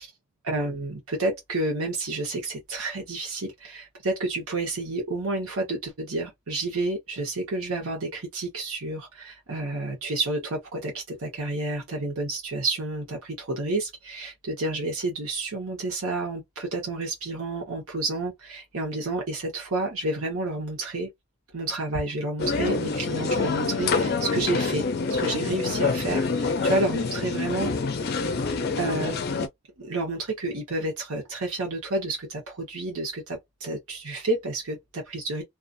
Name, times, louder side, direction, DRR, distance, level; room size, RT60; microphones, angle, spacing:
voice 1, 0.4-21.1 21.5-24.9 25.2-27.7 28.8-29.4 29.8-35.4, right 2 dB, 75° right, 1.0 m, -30 dB
sound 1, 22.4-29.5, left 4 dB, 45° left, 0.4 m, -26 dB
2.4 x 2.4 x 2.5 m
head